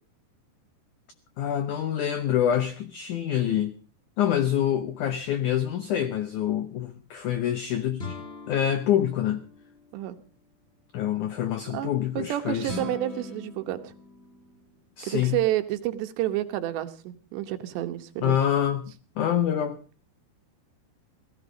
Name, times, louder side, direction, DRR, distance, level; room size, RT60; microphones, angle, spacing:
voice 1, 1.4-3.7 4.2-8.1 8.5-9.4 10.9-12.8 15.0-15.4 18.2-19.8, left 10 dB, 90° left, 1.7 m, -26 dB
sound 1, 8.0-10.0 12.6-14.8, left 3 dB, 30° left, 1.2 m, -41 dB
voice 2, 11.7-13.9 15.1-18.4, right 14 dB, 85° right, 3.3 m, -30 dB
17.5 x 14.5 x 5.1 m
omnidirectional pair, 4.9 m